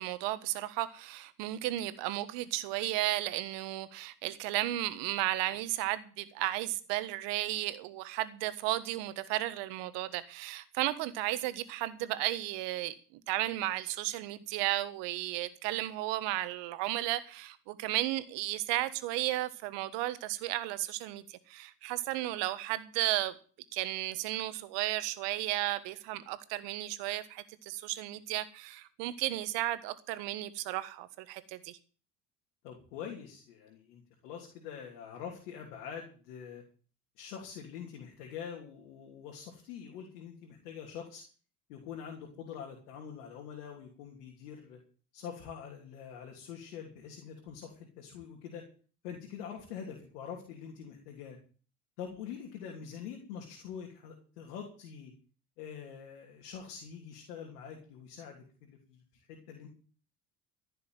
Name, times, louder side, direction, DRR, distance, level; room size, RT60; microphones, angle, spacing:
voice 1, 0.0-23.3 23.7-31.8, right 15 dB, 65° right, 1.5 m, -34 dB
voice 2, 32.6-36.6 37.2-41.2 41.7-44.8 45.1-48.6 49.0-51.4 52.0-55.1 55.6-59.0 59.3-59.7, left 7 dB, 75° left, 3.2 m, -45 dB
14.5 x 6.9 x 9.2 m
hypercardioid pair, 65°, 46 cm